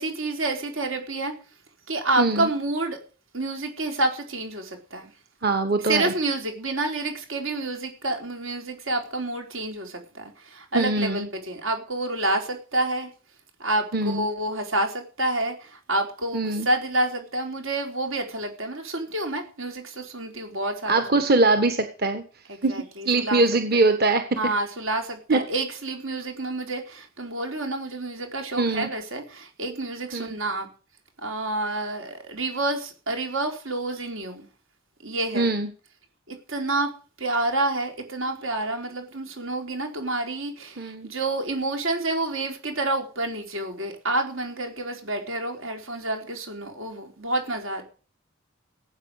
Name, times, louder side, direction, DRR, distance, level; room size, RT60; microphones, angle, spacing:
voice 1, 0.0-1.3 1.9-3.0 3.3-5.1 5.9-13.1 13.6-21.2 22.5-23.4 23.7-23.8 24.4-30.7 31.2-34.5 35.0-35.5 36.3-36.9 37.2-47.8, right 2 dB, 85° right, 3 dB, 4.3 m, -28 dB
voice 2, 2.2-2.5 5.4-6.1 10.7-11.3 13.9-14.2 16.3-16.7 20.9-22.2 22.6-24.2 25.3-25.4 28.6-28.9 30.1-30.3 35.3-35.7 40.8-41.1, right 2 dB, 50° right, 7 dB, 1.4 m, -22 dB
18.0 x 8.9 x 6.6 m, 0.37 s
head